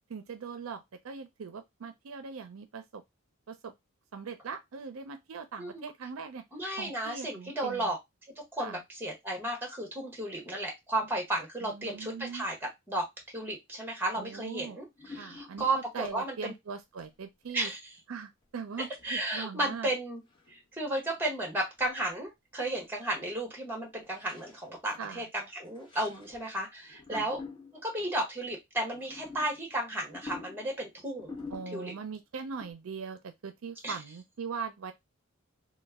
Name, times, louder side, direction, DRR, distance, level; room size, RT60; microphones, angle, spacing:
voice 1, 0.1-3.0 3.5-3.7 4.1-6.4 6.8-7.9 8.6-8.8 11.6-12.5 14.2-14.8 15.1-15.6 15.9-17.7 18.1-19.9 25.0-25.2 27.1-27.3 31.5-34.9, right 5 dB, 70° right, 0.5 m, -41 dB
voice 2, 6.5-8.0 8.5-13.0 13.3-16.5 17.5-17.8 18.8-20.2 20.5-27.4 27.8-31.3 31.7-31.9 33.8-33.9, right 1 dB, 10° right, 1.2 m, -34 dB
sound 1, 14.3-14.6 14.9-16.2 16.8-17.1 17.4-17.5 18.7-19.8 20.3-20.6 20.9-21.2 21.8-21.9 22.2-22.3 22.5-22.9 23.2-23.3 24.0-24.7 25.6-26.5 26.8-27.9 28.8-32.1 32.6-32.7, left 4 dB, 25° left, 0.9 m, -48 dB
3.1 x 2.2 x 3.4 m
head